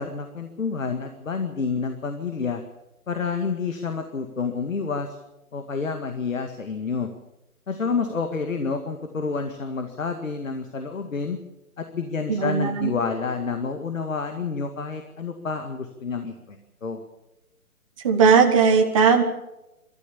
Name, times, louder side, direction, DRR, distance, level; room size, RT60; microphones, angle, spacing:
voice 1, 0.0-2.6 3.1-5.2 5.5-7.1 7.7-11.4 11.8-17.0, left 5 dB, 60° left, 6 dB, 2.1 m, -29 dB
voice 2, 12.3-12.9 18.0-19.2, right 6 dB, 25° right, 3 dB, 1.4 m, -18 dB
29.0 x 13.5 x 7.1 m, 0.95 s
figure-of-eight pair, 160°, 44 cm